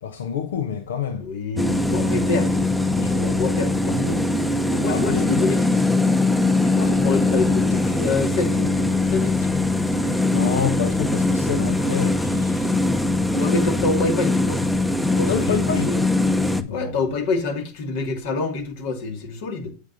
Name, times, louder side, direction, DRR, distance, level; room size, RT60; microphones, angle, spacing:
voice 1, 0.0-1.3 4.8-5.5 6.9-7.0 10.3-12.8 15.3-15.9 16.6-16.9, left 8 dB, 80° left, 0.9 m, -27 dB
voice 2, 1.2-4.2 4.7-6.1 6.6-9.6 13.3-14.6 15.0-16.0 16.7-19.7, left 3 dB, 65° left, 2.2 m, -27 dB
sound 1, 1.6-16.6, left 2 dB, 5° left, 0.8 m, -21 dB
8.1 x 7.9 x 2.7 m
hypercardioid pair, 95°, 0 cm